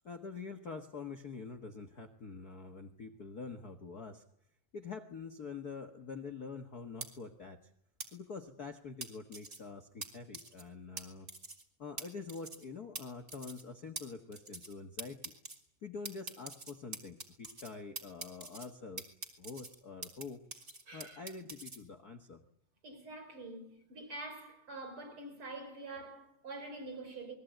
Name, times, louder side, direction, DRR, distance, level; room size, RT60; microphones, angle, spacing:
voice 1, 0.0-4.2 4.7-7.7 8.1-11.3 11.8-15.3 15.8-19.1 19.4-20.4 20.9-22.4, left 4 dB, 75° left, 0.8 m, -46 dB
sound 1, 7.0-7.1 8.0-8.1 9.0-9.6 10.0-10.1 10.3-10.6 11.0-11.1 11.3-11.6 12.0-12.1 12.3-12.6 13.0-13.1 13.3-13.6 14.0-14.1 14.3-14.7 15.0-15.6 16.0-17.7 18.0-18.7 19.0-20.2 20.5-21.8, right 3 dB, 20° right, 3.2 m, -44 dB
voice 2, 20.9-21.2 22.8-27.4, right 2 dB, 35° right, 5.7 m, -46 dB
29.0 x 21.5 x 9.1 m
omnidirectional pair, 4.1 m